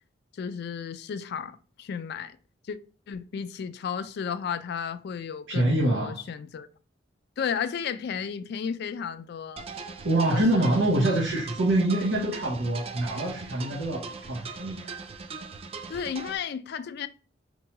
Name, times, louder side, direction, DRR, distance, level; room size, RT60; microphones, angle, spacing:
voice 1, 0.3-2.4 2.7-2.8 3.1-6.7 7.4-9.7 10.2-10.8 15.9-17.1, left 7 dB, 60° left, 0.3 m, -33 dB
voice 2, 5.5-6.2 10.0-15.1, right 1 dB, 90° right, 0.8 m, -25 dB
sound 1, 9.6-16.4, right 4 dB, 30° right, 0.4 m, -40 dB
4.5 x 2.3 x 2.9 m
head